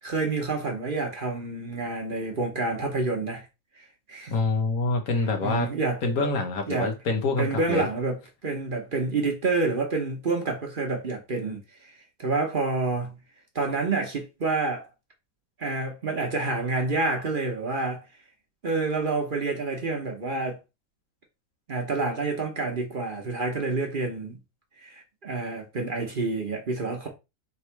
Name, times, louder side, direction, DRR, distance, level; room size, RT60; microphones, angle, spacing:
voice 1, 0.0-3.5 3.8-4.3 5.4-6.0 6.7-6.9 7.4-8.2 8.4-11.9 12.2-13.2 13.5-14.9 15.6-18.1 18.6-20.6 21.7-24.4 24.8-27.1, right 3 dB, 40° right, 1.0 m, -28 dB
voice 2, 4.3-5.7 6.0-7.9, left 3 dB, 80° left, 1.5 m, -26 dB
3.6 x 3.1 x 4.5 m
omnidirectional pair, 1.5 m